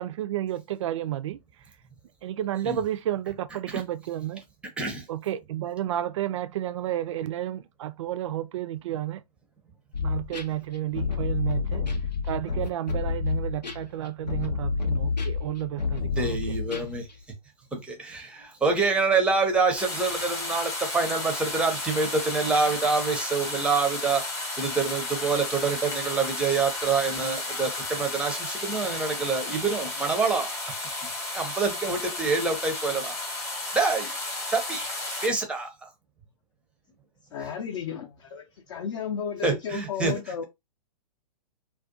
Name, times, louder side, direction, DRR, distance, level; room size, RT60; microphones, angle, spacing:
voice 1, 0.0-1.4 2.2-4.4 5.1-9.2 10.0-11.8 12.2-16.4, right 12 dB, 50° right, 0.4 m, -31 dB
sound 1, 9.9-17.1, left 4 dB, 90° left, 0.6 m, -29 dB
voice 2, 16.2-17.1 17.7-24.2 24.6-30.8 31.3-33.1 33.7-34.1 34.5-34.9 35.2-35.7 39.4-40.1, right 4 dB, 5° right, 0.6 m, -26 dB
sound 2, 19.8-35.3, left 2 dB, 15° left, 0.9 m, -33 dB
voice 3, 37.3-40.4, left 7 dB, 45° left, 0.6 m, -33 dB
2.4 x 2.2 x 2.5 m
figure-of-eight pair, 120°, 21 cm